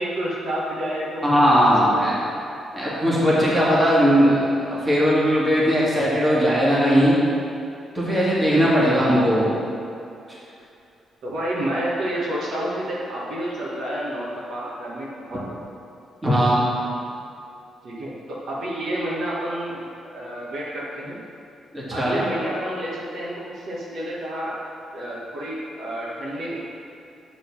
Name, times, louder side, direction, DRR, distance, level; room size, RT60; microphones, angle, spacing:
voice 1, 0.0-2.1 8.8-9.2 11.2-15.6 17.8-21.2 21.9-24.5 24.9-26.6, right 1 dB, 60° right, -5 dB, 1.6 m, -29 dB
voice 2, 1.2-2.2 2.7-4.4 4.7-7.2 8.0-9.6 16.2-16.7 21.7-22.2, equal, 15° right, -7 dB, 1.7 m, -18 dB
9.0 x 3.9 x 6.0 m, 2.6 s
cardioid pair, 160°, 0 cm